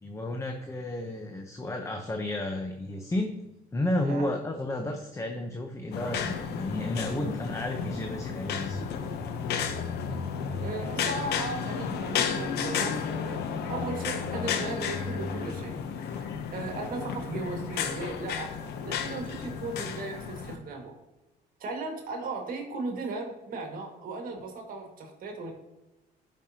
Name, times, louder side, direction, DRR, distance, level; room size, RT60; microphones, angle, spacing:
voice 1, 0.0-3.3 3.7-9.0, left 1 dB, 15° left, 3 dB, 0.8 m, -32 dB
voice 2, 4.0-4.4 10.6-20.9 21.6-25.5, right 3 dB, 55° right, 2 dB, 1.9 m, -37 dB
sound 1, 5.9-20.6, left 6 dB, 80° left, 0.9 m, -32 dB
12.5 x 5.4 x 2.8 m, 1.0 s
cardioid pair, 110°, 17 cm